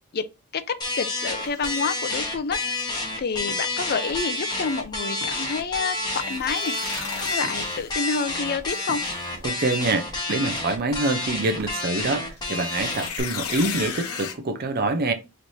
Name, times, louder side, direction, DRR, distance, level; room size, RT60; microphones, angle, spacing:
sound 1, 0.8-13.2, left 2 dB, 20° left, 1.3 m, -29 dB
voice 1, 1.0-2.6 3.2-6.8 7.3-9.0, left 5 dB, 45° left, 0.5 m, -28 dB
sound 2, 1.4-1.7 6.1-8.2 8.7-9.3 12.3-14.3, left 7 dB, 80° left, 0.8 m, -35 dB
sound 3, 3.5-3.6 5.2-5.5 7.4-7.6 8.9-9.1 10.3-10.6 11.6-11.7, right 2 dB, 70° right, 1.3 m, -40 dB
voice 2, 9.4-15.1, right 2 dB, 45° right, 0.6 m, -26 dB
5.8 x 3.2 x 2.7 m
head